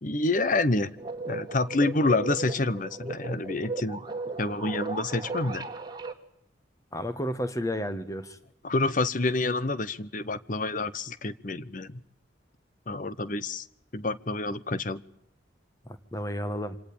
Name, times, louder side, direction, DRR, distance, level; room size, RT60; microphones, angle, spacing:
voice 1, 0.0-0.9 1.3-4.0 4.4-5.6 8.6-12.0 12.9-13.7 13.9-15.0, left 2 dB, 45° left, 16 dB, 1.0 m, -28 dB
sound 1, 1.0-6.1, right 3 dB, 25° right, 1.9 m, -36 dB
voice 2, 6.9-8.4 15.8-16.8, equal, 15° left, 10 dB, 1.6 m, -32 dB
26.0 x 18.5 x 8.8 m, 0.77 s
head